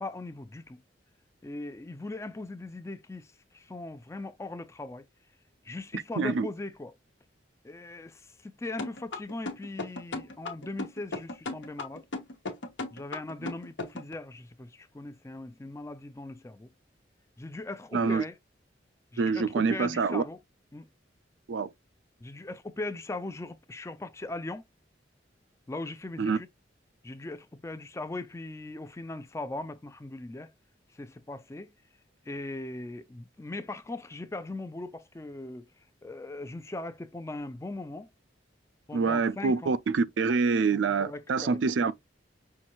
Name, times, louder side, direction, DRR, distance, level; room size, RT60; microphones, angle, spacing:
voice 1, 0.0-0.8 1.4-3.3 3.5-5.0 5.6-6.9 7.6-12.0 12.9-16.7 17.4-18.4 19.1-20.4 20.7-20.8 22.2-24.6 25.7-26.5 27.0-30.5 30.9-31.7 32.3-35.7 36.0-38.1 38.9-39.8 40.7-41.9, left 2 dB, 15° left, 0.4 m, -39 dB
voice 2, 6.2-6.5 17.9-18.2 19.2-20.2 21.5-21.7 26.2-26.4 38.9-41.9, right 4 dB, 80° right, 0.4 m, -26 dB
sound 1, 8.8-14.1, left 2 dB, 85° left, 1.1 m, -36 dB
5.8 x 2.6 x 2.9 m
head